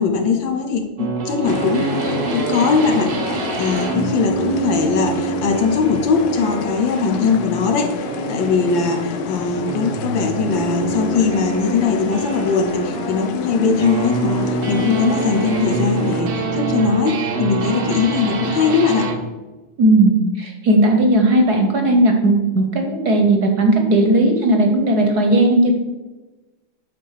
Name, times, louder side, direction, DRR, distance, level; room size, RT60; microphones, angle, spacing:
voice 1, 0.0-3.1 3.6-8.0 8.3-19.1, left 5 dB, 65° left, 5 dB, 1.5 m, -20 dB
sound 1, 1.0-19.2, right 4 dB, 75° right, 0.5 m, -25 dB
sound 2, 1.5-16.2, left 7 dB, 80° left, 0.8 m, -31 dB
voice 2, 19.8-25.7, right 1 dB, 55° right, 3 dB, 1.2 m, -16 dB
8.5 x 4.3 x 6.5 m, 1.1 s
omnidirectional pair, 2.4 m